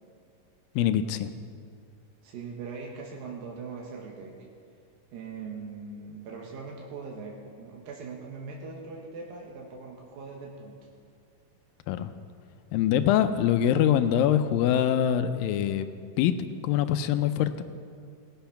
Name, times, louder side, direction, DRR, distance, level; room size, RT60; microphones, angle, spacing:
voice 1, 0.8-1.3 11.9-12.1 12.7-15.9 16.2-16.3 16.6-17.6, left 10 dB, 90° left, 10 dB, 2.4 m, -24 dB
voice 2, 2.2-4.3 5.1-10.8, right 4 dB, 85° right, -1 dB, 2.9 m, -41 dB
18.0 x 7.9 x 5.8 m, 2.2 s
omnidirectional pair, 4.0 m